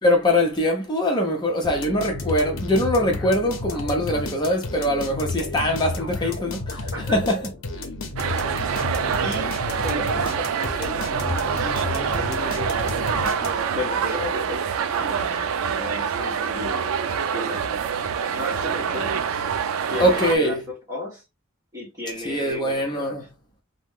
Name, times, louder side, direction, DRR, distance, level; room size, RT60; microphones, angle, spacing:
voice 1, 0.0-7.4 20.0-20.6 22.2-23.3, left 1 dB, 20° left, 0.8 m, -22 dB
sound 1, 1.6-13.8, left 2 dB, 75° left, 0.7 m, -31 dB
sound 2, 8.2-20.4, right 7 dB, 90° right, 0.4 m, -26 dB
voice 2, 9.2-15.4 15.7-16.9 17.3-17.6 18.3-19.1 19.9-21.2 21.7-23.3, left 2 dB, 15° right, 1.2 m, -35 dB
3.0 x 2.2 x 3.5 m
head